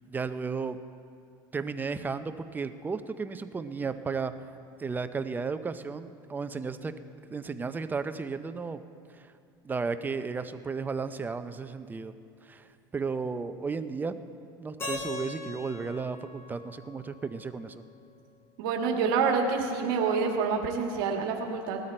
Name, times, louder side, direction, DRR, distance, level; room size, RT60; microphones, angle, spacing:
voice 1, 0.1-0.8 1.5-4.3 4.8-7.0 7.3-8.8 9.1-9.3 9.6-12.1 12.4-14.2 14.6-17.8, right 4 dB, 15° right, 10 dB, 0.5 m, -34 dB
Keyboard (musical), 14.8-17.8, left 3 dB, 20° left, 3.8 m, -40 dB
voice 2, 18.6-21.8, right 5 dB, 75° right, 2 dB, 1.8 m, -27 dB
19.0 x 13.0 x 4.4 m, 2.4 s
supercardioid pair, 125°, 12 cm